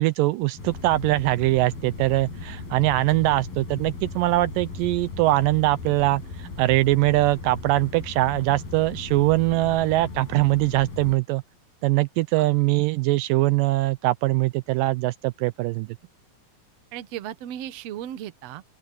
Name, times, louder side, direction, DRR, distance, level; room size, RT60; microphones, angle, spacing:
voice 1, 0.0-11.4 11.8-15.9, right 18 dB, 80° right, 2.1 m, -22 dB
sound 1, 0.6-11.2, left 3 dB, 80° left, 9.5 m, -37 dB
voice 2, 16.9-18.6, right 11 dB, 65° right, 1.8 m, -36 dB
open air
omnidirectional pair, 4.1 m